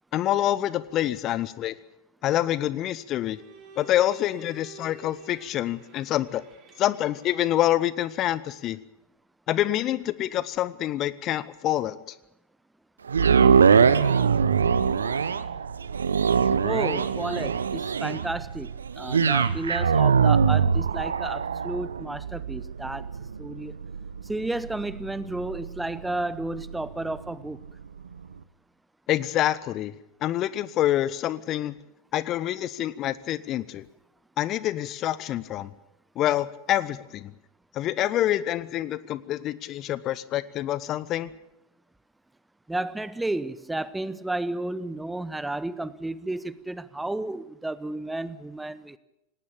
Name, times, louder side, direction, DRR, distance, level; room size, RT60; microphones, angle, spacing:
voice 1, 0.1-1.8 2.2-3.4 3.8-6.4 6.8-8.8 9.5-12.1 29.1-29.9 30.2-31.7 32.1-33.9 34.4-35.7 36.2-37.3 37.7-41.3, left 13 dB, 35° left, 18 dB, 0.8 m, -26 dB
Bowed string instrument, 3.3-7.8, right 3 dB, 35° right, 4.3 m, -49 dB
sound 1, 13.1-27.3 27.8-27.9, right 6 dB, 70° right, 0.9 m, -23 dB
voice 2, 16.6-18.7 19.0-23.1 23.4-23.7 24.3-27.6 42.7-49.0, right 2 dB, 5° right, 17 dB, 0.8 m, -32 dB
18.5 x 18.5 x 8.7 m, 0.84 s
figure-of-eight pair, 90°, 0 cm